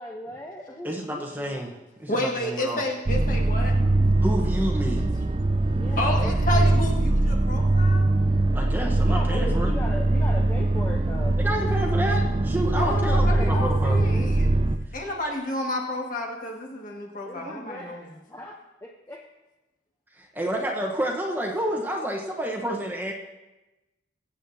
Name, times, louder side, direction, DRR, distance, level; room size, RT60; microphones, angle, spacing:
voice 1, 0.0-1.7 5.7-6.7 9.1-11.4 13.1-14.3 17.3-19.2, left 1 dB, 15° left, 1 dB, 0.7 m, -38 dB
voice 2, 0.8-1.7 2.0-2.8 4.2-5.0 8.5-9.7 11.4-14.0 20.1-23.1, right 1 dB, 10° right, 0 dB, 1.0 m, -29 dB
voice 3, 2.1-3.8 6.0-8.1 12.8-14.5 14.9-18.1, left 1 dB, 45° left, 0 dB, 1.7 m, -30 dB
sound 1, 3.1-14.8, right 2 dB, 25° right, 0.4 m, -22 dB
22.0 x 8.5 x 2.7 m, 1.0 s
head